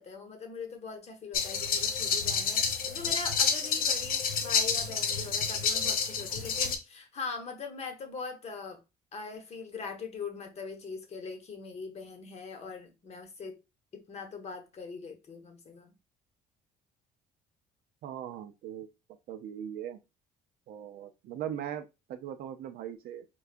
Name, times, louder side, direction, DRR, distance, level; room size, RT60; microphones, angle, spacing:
voice 1, 0.0-8.8 9.1-13.6 13.9-15.9, left 4 dB, 40° left, 0.9 m, -41 dB
sound 1, 1.3-6.8, left 6 dB, 60° left, 0.6 m, -29 dB
voice 2, 18.0-18.9 19.3-20.0 20.7-23.2, right 10 dB, 65° right, 0.4 m, -39 dB
4.6 x 2.3 x 2.4 m
cardioid pair, 110°, 17 cm